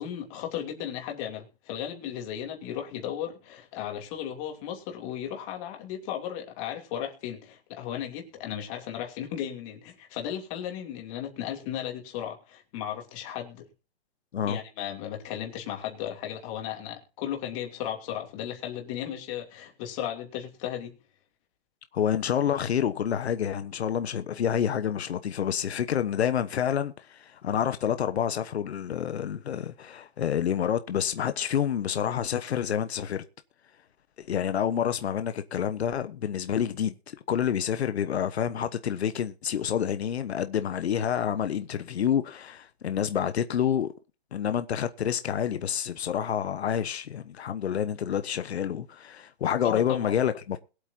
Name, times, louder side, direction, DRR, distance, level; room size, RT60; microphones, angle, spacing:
voice 1, 0.0-13.7 14.5-20.9 49.6-50.1, left 10 dB, 30° left, 2.9 m, -35 dB
voice 2, 21.9-33.2 34.2-43.9 44.3-50.6, left 9 dB, 85° left, 1.2 m, -28 dB
21.5 x 8.2 x 2.8 m
hypercardioid pair, 160°, 32 cm